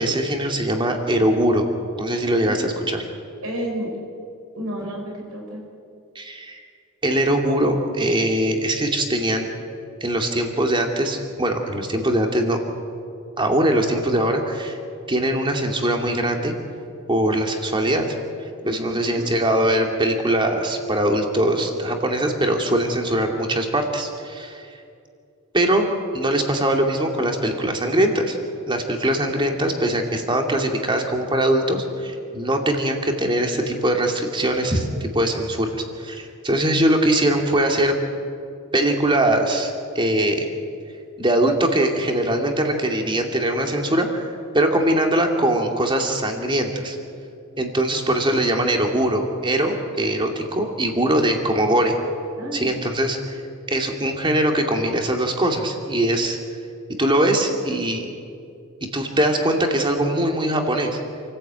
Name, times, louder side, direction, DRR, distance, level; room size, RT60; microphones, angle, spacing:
voice 1, 0.0-1.7 2.0-3.0 6.2-6.6 7.0-9.5 10.0-12.6 13.4-14.8 15.1-16.5 17.1-18.0 18.7-24.6 25.5-28.4 28.7-37.9 38.7-40.5 41.2-44.3 44.5-47.0 47.6-52.0 52.5-53.4 53.7-56.4 57.0-58.0 58.9-61.0, right 1 dB, 20° right, 3 dB, 2.5 m, -21 dB
voice 2, 2.4-2.7 3.4-3.9 4.5-5.6 18.6-19.3 32.3-32.5 52.4-52.7, equal, 85° right, 0 dB, 6.2 m, -32 dB
28.0 x 14.5 x 9.0 m, 2.5 s
head